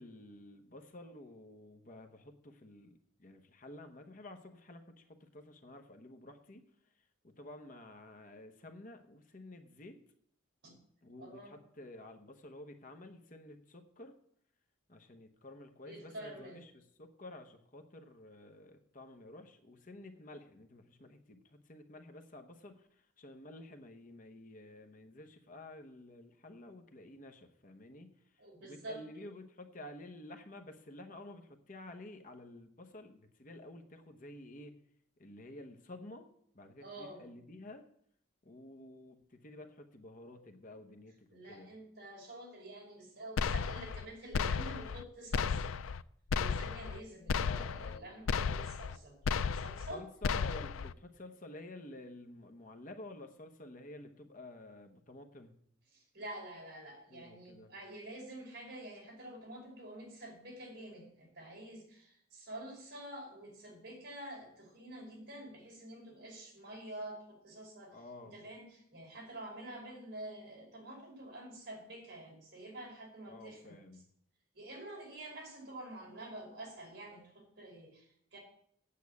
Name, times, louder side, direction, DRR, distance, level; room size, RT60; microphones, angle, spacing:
voice 1, 0.0-6.6 7.2-10.0 11.0-14.1 14.9-34.7 35.2-36.3 36.5-37.8 38.4-41.7 47.3-48.1 49.9-55.5 57.1-57.7 67.9-68.4 73.3-74.0, left 1 dB, 40° left, 6 dB, 1.0 m, -51 dB
voice 2, 11.2-11.6 15.8-16.6 28.4-29.3 36.8-37.3 41.3-45.7 46.3-50.0 55.9-73.8 74.5-78.4, right 1 dB, 55° right, -1 dB, 5.4 m, -48 dB
sound 1, 43.4-44.0 44.3-45.0 45.3-46.0 46.3-47.0 47.3-48.0 48.3-49.0 49.3-49.9 50.2-50.9, left 6 dB, 85° left, 0.4 m, -34 dB
8.6 x 8.1 x 8.4 m, 0.68 s
head